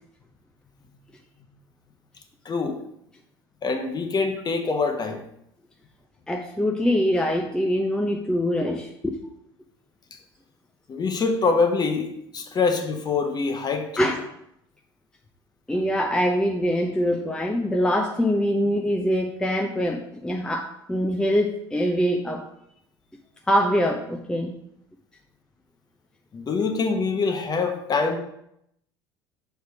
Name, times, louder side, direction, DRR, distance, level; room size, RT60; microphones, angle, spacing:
voice 1, 2.4-2.8 3.6-5.2 10.1-10.2 10.9-14.1 26.3-28.2, left 4 dB, 30° left, 6 dB, 1.0 m, -25 dB
voice 2, 6.3-9.2 14.0-14.2 15.7-22.5 23.5-24.5, equal, 5° left, 2 dB, 0.6 m, -24 dB
6.4 x 3.5 x 4.7 m, 0.76 s
hypercardioid pair, 70°, 13 cm